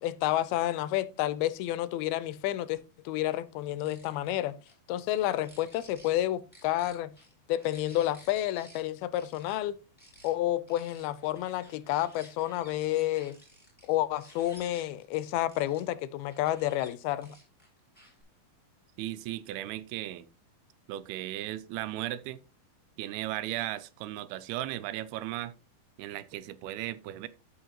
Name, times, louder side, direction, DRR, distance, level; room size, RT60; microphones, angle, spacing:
voice 1, 0.0-4.6 4.9-7.1 7.5-9.7 10.2-13.4 13.8-17.4, left 14 dB, 85° left, 2.5 m, -30 dB
sound 1, 3.6-4.3 4.6-4.7 5.3-6.2 6.5-8.8 9.1-9.6 10.0-10.3 10.7-15.8 16.3-16.9 17.2-18.2, equal, ahead, 3.5 m, -55 dB
voice 2, 19.0-20.3 20.9-22.4 23.0-25.6 26.0-27.3, right 14 dB, 85° right, 2.6 m, -36 dB
14.0 x 5.5 x 2.9 m
omnidirectional pair, 4.4 m